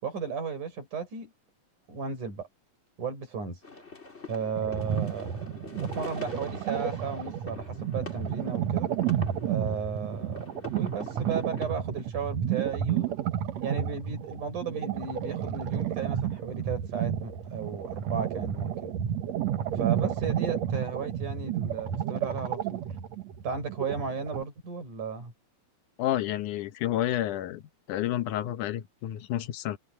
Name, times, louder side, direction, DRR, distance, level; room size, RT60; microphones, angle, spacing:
voice 1, 0.0-1.3 1.9-2.5 3.0-3.8 4.3-5.5 5.8-8.9 9.4-13.2 13.6-18.9 19.7-22.8 23.4-25.3, right 5 dB, 85° right, 8.0 m, -35 dB
sound 1, 3.6-11.7, left 3 dB, 20° left, 3.1 m, -45 dB
sound 2, 4.6-24.4, right 10 dB, 65° right, 2.4 m, -31 dB
voice 2, 26.0-27.6 27.9-29.8, left 12 dB, 85° left, 2.5 m, -30 dB
omnidirectional pair, 3.5 m